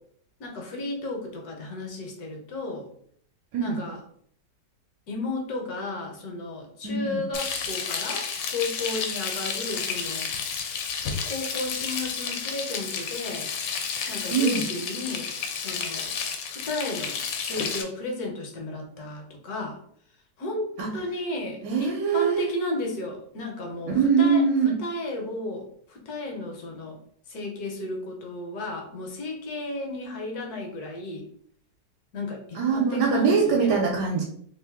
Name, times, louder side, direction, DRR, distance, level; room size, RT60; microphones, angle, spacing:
voice 1, 0.4-2.9 3.6-4.0 5.1-10.3 11.2-13.5 14.1-16.2 16.5-19.8 20.4-24.4 24.8-27.0 27.3-31.3 32.1-33.7, left 2 dB, 65° left, 2 dB, 1.2 m, -33 dB
voice 2, 3.5-3.8 6.8-7.3 14.3-14.7 20.8-20.9 21.6-22.5 23.9-24.8 32.5-34.2, right 5 dB, 75° right, -2 dB, 1.2 m, -23 dB
Frying (food), 7.3-17.8, left 6 dB, 85° left, 1.3 m, -31 dB
3.1 x 2.6 x 3.4 m, 0.64 s
omnidirectional pair, 1.9 m